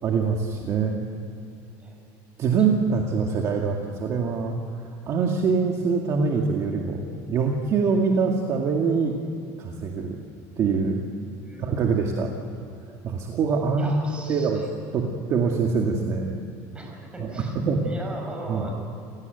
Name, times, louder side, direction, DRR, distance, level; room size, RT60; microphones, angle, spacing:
voice 1, 0.0-1.1 2.4-4.6 5.1-9.1 9.6-10.2 10.6-11.0 11.6-12.3 13.0-14.6 14.9-16.3 17.2-17.3 17.5-17.8 18.5-18.7, right 5 dB, 40° right, 1 dB, 2.2 m, -24 dB
voice 2, 11.4-11.9 13.8-14.7 16.7-17.6 17.8-18.8, right 1 dB, 15° right, 1 dB, 6.4 m, -38 dB
29.0 x 18.0 x 9.4 m, 2.8 s
cardioid pair, 155°, 8 cm